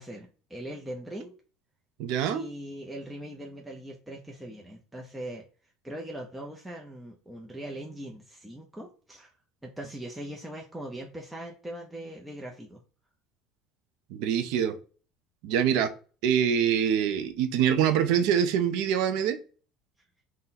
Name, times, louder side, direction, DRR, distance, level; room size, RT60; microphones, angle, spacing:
voice 1, 0.0-1.4 2.3-5.4 5.8-9.3 9.6-12.8, right 1 dB, 5° right, -1 dB, 0.6 m, -40 dB
voice 2, 2.0-2.4 14.1-14.8 15.4-15.9 16.2-19.4, right 8 dB, 70° right, 10 dB, 0.5 m, -25 dB
3.7 x 2.2 x 4.1 m, 0.38 s
supercardioid pair, 115°, 0 cm